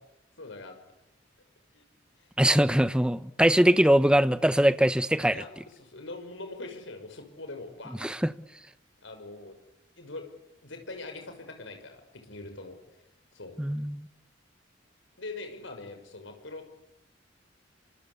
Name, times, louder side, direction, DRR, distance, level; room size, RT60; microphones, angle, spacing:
voice 1, 0.4-0.8 1.7-1.8 2.2-2.3 5.3-8.1 9.0-9.6 10.0-10.3 10.6-13.0 13.3-13.5 15.2-16.7, left 2 dB, 75° left, 6.1 m, -42 dB
voice 2, 2.4-5.4 8.0-8.3 13.6-14.0, equal, 5° right, 1.0 m, -22 dB
27.0 x 26.5 x 8.3 m
head